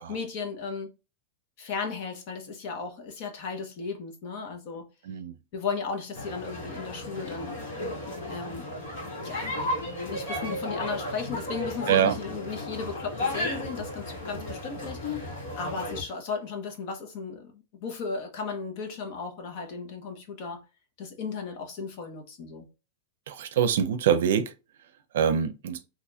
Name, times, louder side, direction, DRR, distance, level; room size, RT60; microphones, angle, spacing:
voice 1, 0.1-0.9 1.6-4.9 5.5-7.6 8.3-8.7 9.2-9.5 10.1-20.6 21.0-22.7, left 5 dB, 40° left, 0.9 m, -35 dB
sound 1, 6.1-16.0, left 1 dB, 60° left, 1.9 m, -34 dB
voice 2, 23.3-24.5 25.1-25.8, right 8 dB, 70° right, 0.5 m, -24 dB
4.2 x 2.9 x 2.3 m
supercardioid pair, 175°, 0 cm